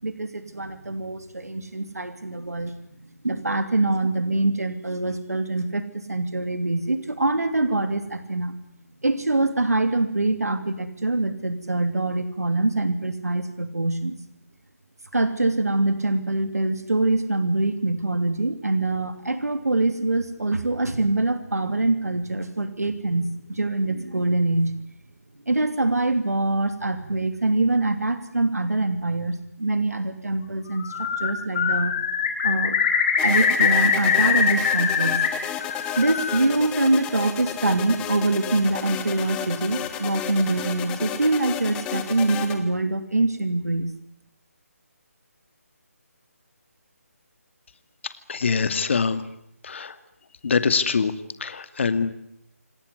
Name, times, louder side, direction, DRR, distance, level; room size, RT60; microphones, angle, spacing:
voice 1, 0.0-2.7 3.2-8.5 9.0-14.2 15.1-24.8 25.5-31.9 32.4-32.8 33.2-35.2 36.0-43.9, right 2 dB, 85° right, 9 dB, 2.9 m, -24 dB
Bird, 30.7-31.3 31.5-35.3 35.6-36.4, left 6 dB, 35° left, 4.4 m, -22 dB
sound 1, 33.2-42.6, left 10 dB, 10° left, 1.8 m, -33 dB
voice 2, 48.3-49.2 49.6-49.9 50.4-51.1 51.4-52.1, left 5 dB, 50° left, 11 dB, 2.3 m, -23 dB
28.0 x 19.0 x 9.7 m, 0.77 s
figure-of-eight pair, 155°, 8 cm